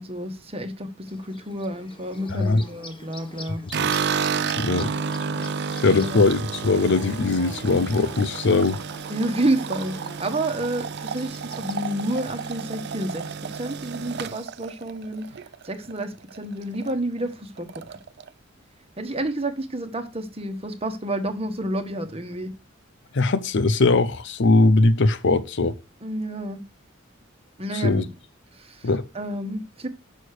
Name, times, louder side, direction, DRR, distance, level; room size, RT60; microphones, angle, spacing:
voice 1, 0.0-3.6 5.5-6.2 8.5-8.6 9.1-15.3 15.6-18.0 19.0-22.5 26.0-26.6 27.6-28.1 28.5-28.9 29.1-29.9, right 1 dB, 30° right, 1.3 m, -30 dB
Bird / Buzz, 1.1-14.0, left 1 dB, 25° left, 1.3 m, -44 dB
voice 2, 2.3-2.6 4.6-4.9 5.8-8.8 23.1-25.8 27.8-28.0 28.8-29.0, left 3 dB, 60° left, 0.7 m, -20 dB
sound 1, 3.7-16.0 16.3-16.9 17.2-17.3 17.6-18.3, right 6 dB, 55° right, 0.5 m, -31 dB
6.5 x 6.4 x 6.5 m
head